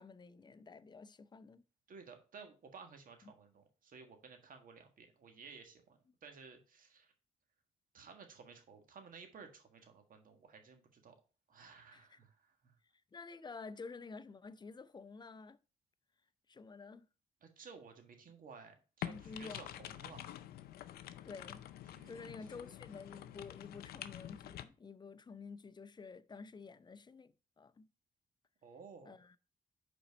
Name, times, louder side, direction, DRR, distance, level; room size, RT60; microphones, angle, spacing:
voice 1, 0.0-1.6 11.9-12.2 13.1-15.6 16.5-17.1 19.1-19.9 21.2-21.7 22.1-27.9 29.0-29.4, left 4 dB, 30° left, 0.6 m, -50 dB
voice 2, 1.9-7.1 7.9-11.1 11.5-12.7 17.4-20.3 21.9-22.3 22.6-22.7 28.6-29.2, right 5 dB, 65° right, 1.6 m, -55 dB
sound 1, 19.0-24.6, left 12 dB, 85° left, 0.5 m, -47 dB
5.5 x 4.4 x 5.2 m
cardioid pair, 65°, 16 cm